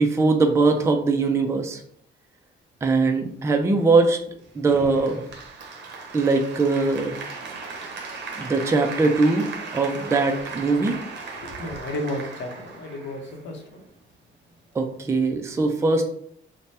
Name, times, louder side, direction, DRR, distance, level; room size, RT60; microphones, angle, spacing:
voice 1, 0.0-1.8 2.8-4.2 4.5-5.2 6.1-7.2 8.4-9.5 9.7-11.0 14.7-16.0, right 3 dB, 15° right, 4 dB, 0.3 m, -21 dB
Applause, 4.7-13.7, right 4 dB, 60° right, 0.7 m, -37 dB
voice 2, 11.4-13.8, left 1 dB, 70° left, 3 dB, 0.7 m, -33 dB
2.6 x 2.2 x 3.2 m, 0.68 s
cardioid pair, 90°, 20 cm